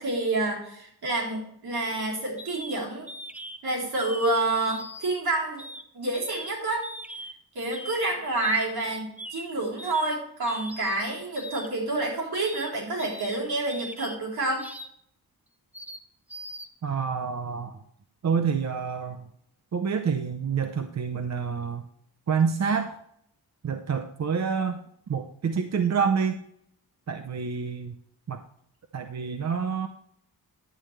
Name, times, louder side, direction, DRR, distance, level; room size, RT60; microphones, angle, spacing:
voice 1, 0.0-3.1 3.6-5.6 5.9-6.9 7.5-14.7, right 2 dB, 75° right, -4 dB, 3.9 m, -28 dB
sound 1, 2.4-2.8 3.1-3.6 4.0-4.3 4.7-5.3 5.6-5.8 6.1-6.5 6.8-7.3 7.7-8.0 8.4-8.6 8.9-9.5 9.8-10.2 10.5-11.0 11.3-11.7 12.4-12.7 13.0-13.4 13.7-14.2 14.6-14.9 15.7-16.0 16.3-16.7, equal, 5° right, 0.7 m, -41 dB
voice 2, 16.8-17.8 18.2-19.2 19.7-21.8 22.3-23.0 23.6-24.8 25.1-26.4 27.1-27.9 28.3-28.4 28.9-29.9, right 6 dB, 45° right, 6 dB, 0.7 m, -27 dB
11.0 x 8.8 x 3.3 m, 0.70 s
wide cardioid pair, 125°, 38 cm